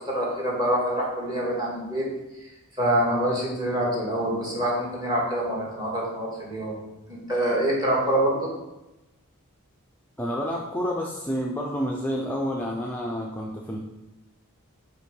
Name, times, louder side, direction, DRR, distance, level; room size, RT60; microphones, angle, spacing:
voice 1, 0.0-2.0 2.8-6.8 7.1-8.5, right 1 dB, 20° right, -5 dB, 1.8 m, -25 dB
voice 2, 10.2-13.8, equal, 10° left, -2 dB, 0.5 m, -29 dB
5.5 x 3.8 x 5.2 m, 0.98 s
head